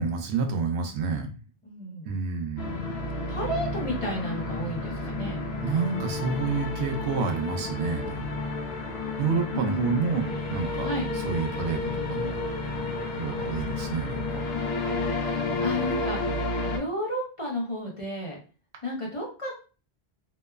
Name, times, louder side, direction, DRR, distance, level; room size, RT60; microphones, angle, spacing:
voice 1, 0.0-1.4 2.0-2.8 5.6-8.2 9.2-12.4 13.1-14.4, right 5 dB, 85° right, 4 dB, 0.9 m, -29 dB
voice 2, 1.6-2.1 3.3-5.4 9.5-10.0 10.8-11.1 15.3-18.4 18.8-19.5, equal, 35° left, -2 dB, 0.6 m, -32 dB
sound 1, 2.6-16.8, left 3 dB, 75° left, 0.8 m, -31 dB
2.9 x 2.0 x 2.2 m, 0.35 s
omnidirectional pair, 1.1 m